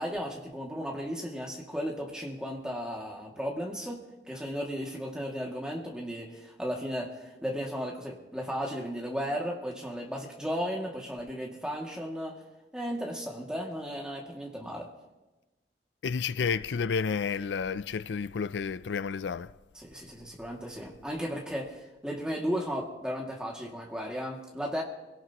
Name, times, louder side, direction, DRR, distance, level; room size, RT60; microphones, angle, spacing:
voice 1, 0.0-4.0 4.3-12.4 12.7-14.9 19.8-24.8, equal, 5° right, 2.3 m, -35 dB
voice 2, 16.0-19.5, left 6 dB, 85° left, 0.4 m, -31 dB
26.0 x 17.5 x 3.0 m
head